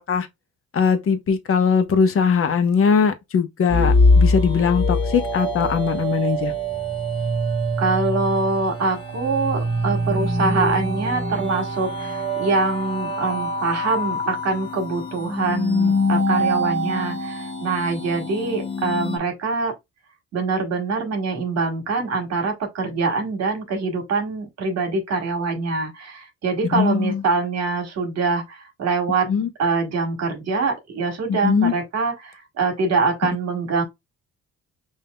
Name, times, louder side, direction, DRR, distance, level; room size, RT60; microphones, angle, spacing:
voice 1, 0.7-6.5 26.7-27.2 29.3-29.5 31.3-31.7, left 6 dB, 45° left, 0.9 m, -20 dB
sound 1, 3.7-19.2, left 1 dB, 15° left, 1.1 m, -23 dB
voice 2, 7.8-19.8 20.3-29.3 29.6-33.8, right 4 dB, 60° right, 1.5 m, -24 dB
5.3 x 2.7 x 2.2 m
cardioid pair, 90°, 30 cm